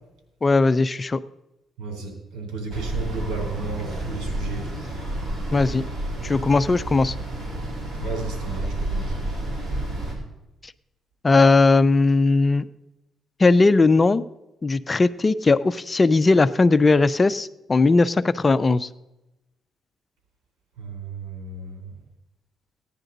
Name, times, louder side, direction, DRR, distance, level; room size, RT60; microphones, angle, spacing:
voice 1, 0.4-1.2 5.5-5.8 6.2-7.1 11.2-12.7 13.4-14.2 14.6-18.9, left 3 dB, 25° left, 15 dB, 0.4 m, -18 dB
voice 2, 1.8-4.7 8.0-9.1 20.8-21.9, right 4 dB, 85° right, 3 dB, 3.5 m, -33 dB
sound 1, 2.7-10.1, right 1 dB, 50° right, 3.9 m, -30 dB
16.0 x 10.0 x 3.9 m, 0.95 s
cardioid pair, 90°, 0 cm